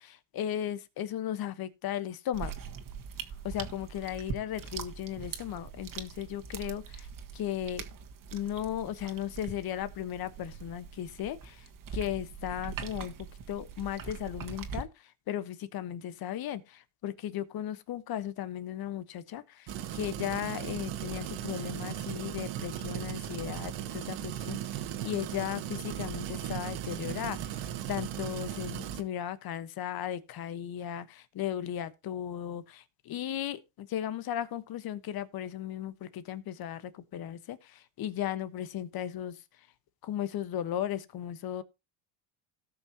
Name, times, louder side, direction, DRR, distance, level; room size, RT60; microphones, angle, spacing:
voice 1, 0.0-2.5 3.4-7.1 7.3-7.8 8.3-13.1 13.5-39.4 40.0-41.6, left 11 dB, 55° left, 1.2 m, -36 dB
sound 1, 2.3-14.8, right 6 dB, 45° right, 1.7 m, -42 dB
sound 2, 19.7-29.0, right 11 dB, 70° right, 1.6 m, -37 dB
17.5 x 5.9 x 2.8 m
cardioid pair, 115°, 44 cm